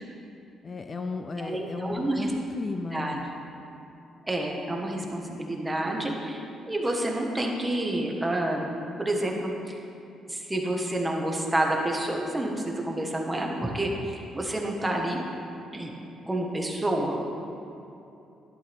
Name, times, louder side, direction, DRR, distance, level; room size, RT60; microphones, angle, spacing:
voice 1, 0.6-3.3, left 3 dB, 35° left, 6 dB, 0.5 m, -35 dB
voice 2, 1.4-2.3 2.9-3.2 4.3-9.8 10.3-15.2 15.7-15.9 16.3-17.2, right 1 dB, 15° right, 0 dB, 1.7 m, -29 dB
12.0 x 11.5 x 3.7 m, 2.8 s
cardioid pair, 90°, 0 cm